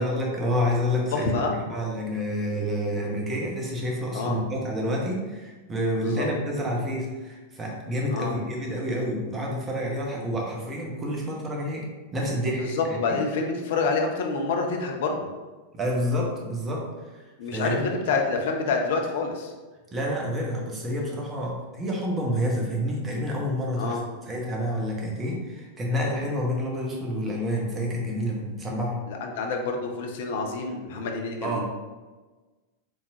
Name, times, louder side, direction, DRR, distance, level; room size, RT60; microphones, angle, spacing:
voice 1, 0.0-13.2 15.7-17.2 17.5-17.8 19.9-24.0 24.3-29.0 31.4-31.7, equal, 20° right, -2 dB, 1.1 m, -28 dB
voice 2, 1.1-1.6 4.1-4.4 6.0-6.3 8.1-8.3 12.6-15.3 17.4-19.5 23.8-24.0 29.1-31.7, left 4 dB, 55° left, 3 dB, 0.6 m, -27 dB
4.6 x 3.6 x 2.7 m, 1.3 s
figure-of-eight pair, 90°, 0 cm